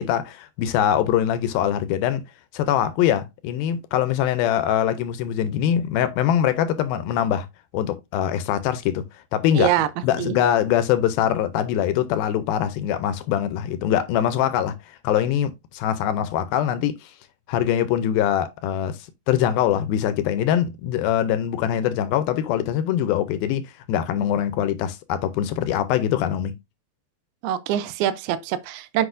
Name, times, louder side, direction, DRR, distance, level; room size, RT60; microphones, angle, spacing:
voice 1, 0.0-2.2 2.5-7.5 7.7-9.0 9.3-9.7 10.0-17.1 17.5-19.0 19.3-26.5, left 10 dB, 80° left, 2.3 m, -23 dB
voice 2, 9.6-9.9 10.2-10.4 27.4-29.1, right 12 dB, 80° right, 2.5 m, -24 dB
8.0 x 5.5 x 2.5 m
omnidirectional pair, 4.5 m